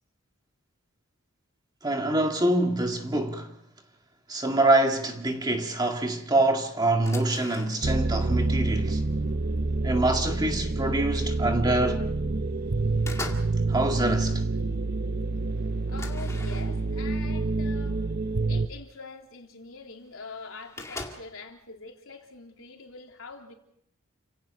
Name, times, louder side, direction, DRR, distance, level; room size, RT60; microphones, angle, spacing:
voice 1, 1.8-3.5 4.3-9.0 9.8-12.1 13.7-14.4, right 2 dB, 20° right, 2.1 m, -25 dB
sound 1, 6.9-8.1 8.4-9.6 10.2-10.4 10.7-11.7 12.1-12.5 12.7-13.7 13.9-14.4 14.9-15.0 15.2-15.3 15.9-17.0 17.9-18.0 18.4-18.5 19.7-19.8 19.9-20.0 20.2-21.5, left 2 dB, 15° left, 2.2 m, -41 dB
sound 2, 7.8-18.7, right 3 dB, 50° right, 0.8 m, -27 dB
voice 2, 15.9-18.0 18.4-23.5, left 4 dB, 75° left, 3.5 m, -44 dB
30.0 x 17.0 x 5.5 m
head